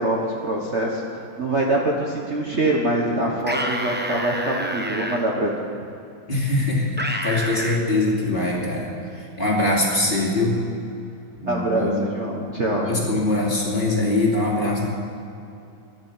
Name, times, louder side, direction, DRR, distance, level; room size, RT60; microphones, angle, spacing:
voice 1, 0.0-5.5 11.5-13.3, right 1 dB, 40° right, -2 dB, 1.5 m, -24 dB
sound 1, 3.4-5.2 7.0-7.8, right 1 dB, 10° right, 0.4 m, -28 dB
voice 2, 6.3-10.6 11.4-12.0 12.7-14.9, left 2 dB, 25° left, -4 dB, 2.8 m, -23 dB
14.0 x 11.5 x 7.3 m, 2.7 s
omnidirectional pair, 2.1 m